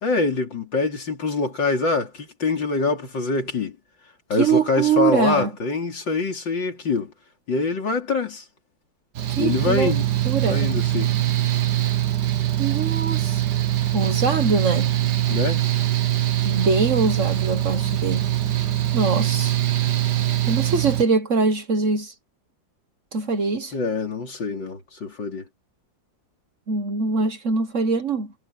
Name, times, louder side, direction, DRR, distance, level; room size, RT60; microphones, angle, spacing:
voice 1, 0.0-3.8 4.3-7.1 7.5-8.4 9.4-10.1 10.5-11.1 15.3-15.6 23.7-25.4, left 4 dB, 75° left, 4.0 m, -24 dB
voice 2, 4.4-5.5 9.3-9.9 10.2-10.7 12.6-13.4 13.9-15.0 16.4-18.3 18.9-19.5 20.5-22.1 23.1-23.7 26.7-28.3, right 4 dB, 45° right, 1.4 m, -23 dB
Mechanical fan, 9.1-21.0, right 13 dB, 65° right, 1.8 m, -23 dB
omnidirectional pair, 2.0 m